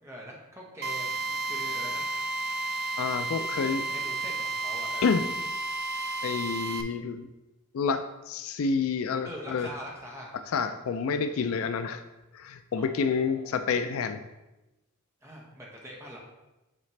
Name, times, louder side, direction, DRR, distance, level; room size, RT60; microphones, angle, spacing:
voice 1, 0.0-2.1 3.4-5.3 9.2-10.3 12.8-13.5 15.2-16.2, equal, 10° right, -2 dB, 1.1 m, -44 dB
Drill, 0.8-6.8, right 2 dB, 45° right, 0.5 m, -32 dB
voice 2, 3.0-3.8 5.0-5.3 6.2-7.3 7.7-9.7 10.5-12.0 12.3-14.2, left 5 dB, 65° left, 9 dB, 0.4 m, -28 dB
7.3 x 4.1 x 3.2 m, 1.0 s
head